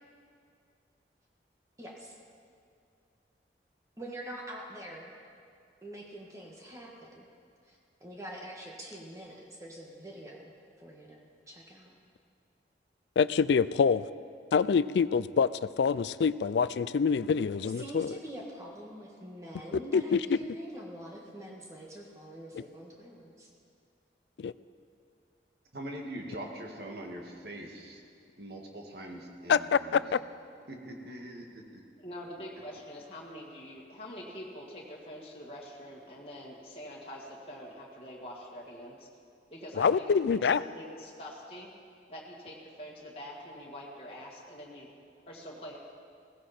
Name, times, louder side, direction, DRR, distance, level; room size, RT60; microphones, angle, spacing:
voice 1, 4.0-5.1 5.8-7.3 7.7-10.4 10.8-11.9 17.8-23.5, right 1 dB, 15° right, -2 dB, 1.7 m, -45 dB
voice 2, 13.2-14.1 14.5-18.1 19.9-20.4 22.5-22.6 24.4-24.5 29.5-30.2 39.8-40.6, left 6 dB, 75° left, 17 dB, 0.4 m, -26 dB
voice 3, 25.7-28.0 28.4-30.2 30.7-31.8, right 1 dB, 65° right, 1 dB, 1.9 m, -42 dB
voice 4, 32.0-39.1 39.5-40.1 40.4-41.7 42.1-44.9 45.3-45.8, equal, 30° left, -4 dB, 2.0 m, -45 dB
16.5 x 16.0 x 4.4 m, 2.4 s
head